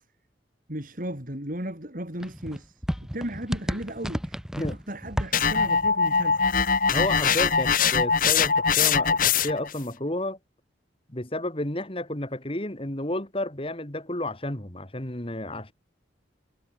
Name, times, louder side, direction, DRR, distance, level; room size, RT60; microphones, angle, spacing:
voice 1, 0.7-6.4, right 1 dB, 50° right, 6.0 m, -35 dB
sound 1, 2.2-7.7 8.0-9.6, equal, 5° right, 2.1 m, -35 dB
sound 2, 5.3-9.7, left 6 dB, 50° left, 2.1 m, -22 dB
voice 2, 6.9-10.4 11.1-15.7, left 1 dB, 30° left, 2.7 m, -31 dB
head